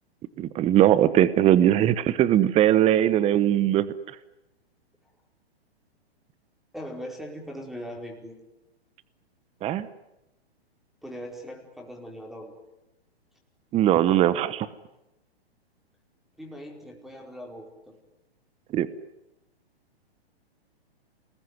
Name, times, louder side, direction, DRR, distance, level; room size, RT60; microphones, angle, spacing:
voice 1, 0.4-3.9 9.6-9.9 13.7-14.7 18.7-18.9, right 12 dB, 20° right, 16 dB, 0.9 m, -20 dB
voice 2, 1.6-1.9 6.7-8.4 11.0-12.5 16.4-18.0, equal, ahead, 2 dB, 4.8 m, -40 dB
28.0 x 20.5 x 9.6 m, 0.93 s
hypercardioid pair, 130°, 32 cm